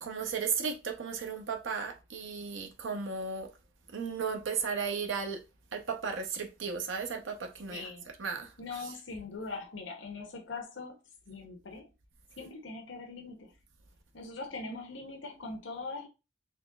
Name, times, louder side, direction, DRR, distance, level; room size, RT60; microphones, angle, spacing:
voice 1, 0.0-3.5 3.9-5.4 5.7-7.9 8.2-8.5 14.7-14.8, right 5 dB, 85° right, 0.7 m, -35 dB
voice 2, 7.7-8.1 8.6-11.0 11.3-11.9 12.4-13.5 14.1-16.1, left 3 dB, 75° left, 0.8 m, -41 dB
4.1 x 2.9 x 2.3 m
head